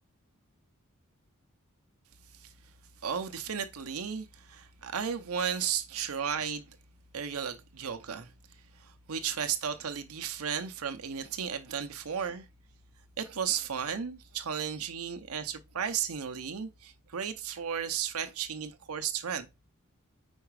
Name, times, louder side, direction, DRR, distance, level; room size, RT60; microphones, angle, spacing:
voice 1, 3.0-6.7 7.1-8.3 8.7-12.5 13.2-19.5, right 7 dB, 85° right, 0.7 m, -34 dB
4.8 x 4.4 x 4.7 m
head